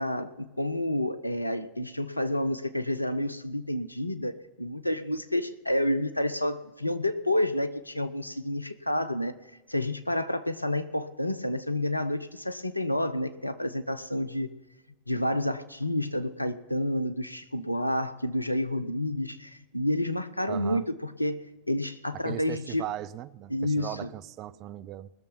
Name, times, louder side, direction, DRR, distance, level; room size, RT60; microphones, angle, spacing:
voice 1, 0.0-9.3 9.7-14.5 15.1-22.9 23.5-24.0, left 1 dB, 85° left, 12 dB, 0.7 m, -29 dB
voice 2, 20.5-20.9 22.1-25.1, right 13 dB, 40° right, 15 dB, 0.5 m, -38 dB
20.0 x 6.9 x 5.7 m, 1.2 s
figure-of-eight pair, 90°, 0 cm